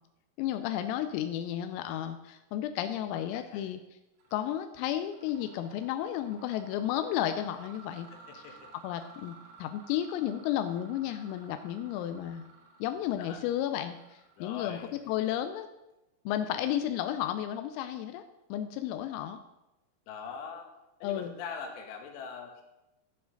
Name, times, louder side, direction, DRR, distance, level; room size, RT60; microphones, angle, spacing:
voice 1, 0.4-3.8 4.3-8.1 8.3-8.4 8.8-12.4 12.8-14.8 15.1-15.7 16.3-18.2 18.5-19.4 21.0-21.3, left 11 dB, 85° left, 9 dB, 3.3 m, -33 dB
voice 2, 3.0-3.7 8.1-8.7 13.2-13.4 14.4-14.9 20.1-20.7 21.0-22.6, left 6 dB, 65° left, 2 dB, 3.2 m, -42 dB
Mechanisms, 4.2-4.5 4.9-15.5, right 4 dB, 75° right, 4.5 m, -55 dB
12.5 x 9.4 x 3.9 m, 0.95 s
omnidirectional pair, 6.0 m